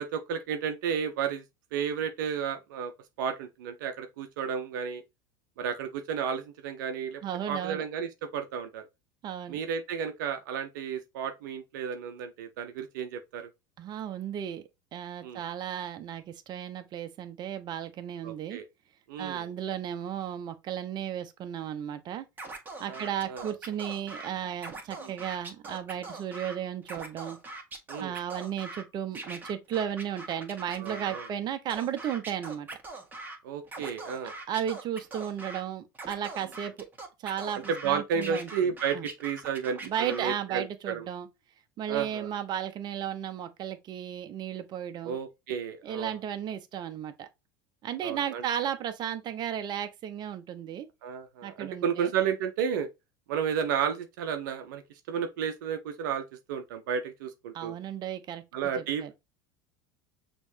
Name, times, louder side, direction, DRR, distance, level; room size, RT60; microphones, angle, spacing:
voice 1, 0.0-1.4 1.7-2.9 3.2-5.0 5.6-7.2 7.5-8.8 9.5-13.5 15.2-15.4 18.2-18.7 19.1-19.5 22.9-23.5 25.0-25.2 27.9-28.1 30.8-31.3 33.4-34.3 37.7-41.1 41.9-42.3 45.0-46.1 48.0-48.4 51.0-52.9 53.3-54.8 55.1-57.7 58.5-59.1, right 7 dB, 70° right, 0.7 m, -32 dB
voice 2, 7.2-7.8 9.2-9.6 13.8-14.6 14.9-18.6 19.2-22.3 22.8-27.4 28.0-32.7 34.5-36.9 37.2-39.1 39.8-41.3 41.8-45.2 45.8-47.3 47.8-50.9 51.4-52.1 57.5-59.1, right 9 dB, 45° right, 0.8 m, -34 dB
Scratching (performance technique), 22.4-24.3 24.6-26.6 26.8-28.8 29.1-31.3 31.7-33.4 33.7-35.6 35.9-37.9 38.2-40.4, right 2 dB, 15° right, 1.7 m, -42 dB
6.2 x 3.1 x 2.7 m
hypercardioid pair, 85°, 11 cm